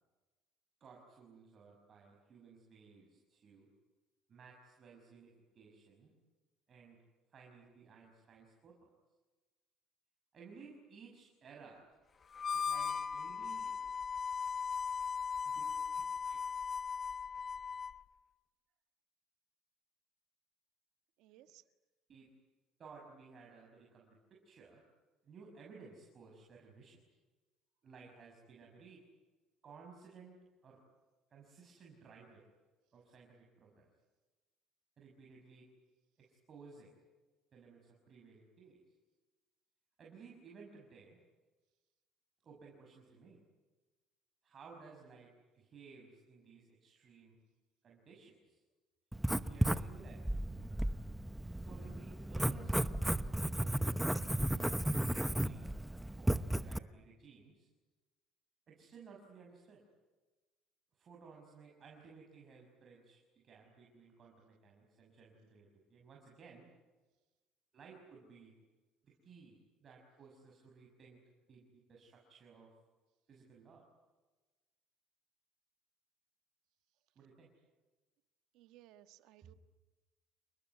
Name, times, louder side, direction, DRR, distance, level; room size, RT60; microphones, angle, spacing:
voice 1, 0.8-3.7 4.3-6.1 6.7-7.0 7.3-8.9 10.3-11.8 12.5-13.8 15.4-16.7 22.1-22.3 22.8-24.8 25.2-27.0 27.8-29.0 29.6-30.8 31.3-32.4 32.9-33.9 35.0-35.7 36.2-36.9 37.5-38.8 40.0-41.2 42.4-43.4 44.4-47.4 47.8-48.6 49.5-50.6 51.6-52.9 53.4-55.7 56.2-57.7 58.7-59.8 60.9-66.7 67.7-68.6 69.0-71.2 71.5-72.7 73.3-73.8 77.1-77.5 79.4-79.6, right 5 dB, 40° right, -1 dB, 6.4 m, -58 dB
Harmonica, 12.3-18.0, left 6 dB, 30° left, 1.1 m, -38 dB
voice 2, 21.2-21.6 78.5-79.5, right 13 dB, 75° right, 10 dB, 1.5 m, -60 dB
Writing, 49.1-56.8, right 1 dB, 5° right, 0.9 m, -34 dB
29.5 x 20.0 x 9.7 m, 1.2 s
cardioid pair, 120°, 0 cm